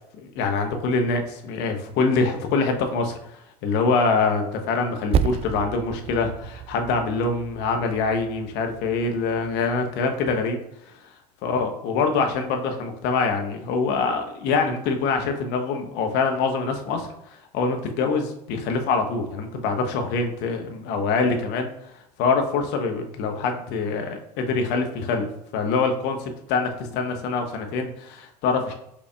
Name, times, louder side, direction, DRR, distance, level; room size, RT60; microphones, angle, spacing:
voice 1, 0.2-10.6 10.9-11.1 11.4-21.7 22.2-25.3 25.5-28.7, left 4 dB, 55° left, 4 dB, 0.9 m, -25 dB
Percussion, 5.1-10.0, right 7 dB, 30° right, 0.3 m, -31 dB
5.8 x 4.0 x 2.3 m, 0.78 s
hypercardioid pair, 80°, 21 cm